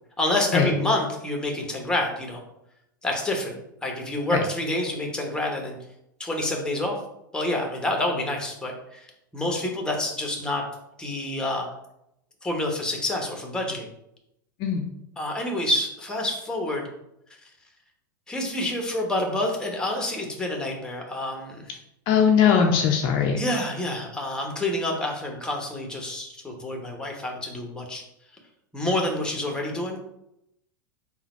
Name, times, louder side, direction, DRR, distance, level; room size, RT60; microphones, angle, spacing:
voice 1, 0.2-2.4 3.0-5.7 6.2-7.0 7.3-9.1 9.3-10.6 11.0-11.6 12.4-13.9 15.2-16.9 18.3-21.7 23.4-28.0 28.7-30.0, left 1 dB, 5° left, 1 dB, 1.0 m, -28 dB
voice 2, 22.1-23.4, left 7 dB, 45° left, 2 dB, 0.6 m, -20 dB
3.8 x 2.3 x 4.3 m, 0.82 s
hypercardioid pair, 90°, 11 cm